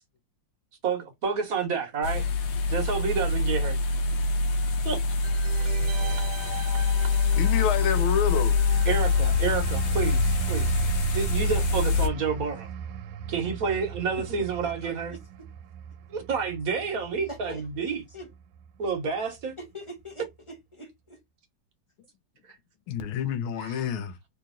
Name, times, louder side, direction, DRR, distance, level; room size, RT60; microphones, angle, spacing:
voice 1, 0.8-2.2 2.7-3.8 4.8-5.0 8.9-10.7 11.0-12.7 13.3-15.2 16.1-18.0 18.8-19.5 23.6-23.7, right 5 dB, 50° right, 1.2 m, -29 dB
sound 1, 2.0-12.1, left 4 dB, 65° left, 1.1 m, -25 dB
sound 2, 5.2-10.7 11.0-11.1, right 9 dB, 70° right, 1.3 m, -42 dB
voice 2, 5.8-6.3 7.4-8.6 22.9-24.1, left 7 dB, 80° left, 1.5 m, -29 dB
sound 3, 8.6-19.0 19.4-19.7, right 8 dB, 90° right, 1.4 m, -36 dB
voice 3, 14.1-14.5 14.8-15.2 17.3-18.3 19.6-21.2, left 1 dB, 30° left, 0.5 m, -43 dB
3.4 x 2.9 x 3.6 m
omnidirectional pair, 2.2 m